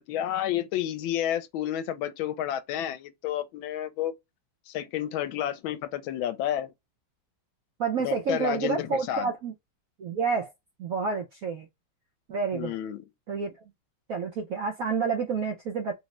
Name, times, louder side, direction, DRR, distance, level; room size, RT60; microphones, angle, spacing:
voice 1, 0.1-4.1 4.7-6.7 8.0-9.3 12.5-13.0, left 11 dB, 80° left, 1.4 m, -30 dB
voice 2, 7.8-9.5 10.0-10.5 10.8-11.7 12.3-12.8 13.3-13.6 14.1-15.9, right 5 dB, 70° right, 0.8 m, -29 dB
3.7 x 2.1 x 2.9 m
omnidirectional pair, 2.2 m